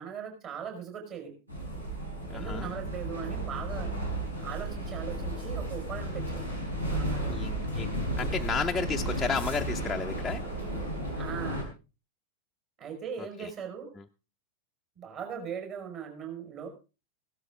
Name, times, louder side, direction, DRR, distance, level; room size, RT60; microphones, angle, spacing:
voice 1, 0.0-1.3 2.3-3.9 4.4-6.5 6.9-7.4 11.1-11.6 12.8-13.9 15.0-16.7, right 7 dB, 40° right, 4 dB, 5.3 m, -39 dB
sound 1, 1.5-11.6, right 1 dB, 85° right, 4.2 m, -33 dB
voice 2, 2.3-2.7 7.3-10.5 13.2-13.5 14.0-14.1, left 5 dB, 10° left, 1 dB, 0.6 m, -33 dB
16.5 x 12.5 x 3.7 m, 0.31 s
figure-of-eight pair, 90°, 0 cm